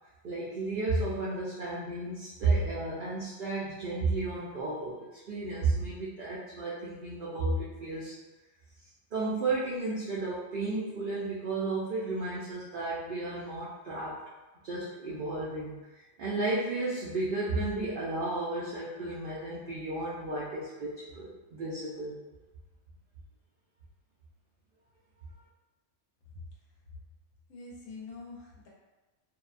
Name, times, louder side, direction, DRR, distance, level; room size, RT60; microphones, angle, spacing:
voice 1, 0.2-8.1 9.1-14.2 14.6-15.8 16.2-22.2, right 2 dB, 70° right, -7 dB, 0.5 m, -33 dB
voice 2, 27.5-28.7, left 3 dB, 80° left, -4 dB, 1.1 m, -45 dB
2.7 x 2.1 x 2.4 m, 1.1 s
omnidirectional pair, 1.4 m